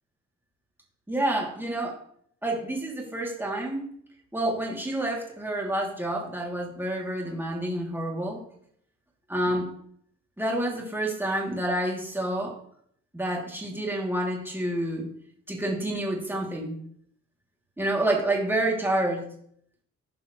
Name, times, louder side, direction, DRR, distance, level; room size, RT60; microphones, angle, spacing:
voice 1, 1.1-2.0 2.4-3.8 4.3-8.4 9.3-9.7 10.4-12.5 13.1-15.1 15.5-16.8 17.8-19.3, right 1 dB, 5° right, -2 dB, 3.1 m, -28 dB
15.5 x 5.5 x 3.3 m, 0.66 s
cardioid pair, 90°, 30 cm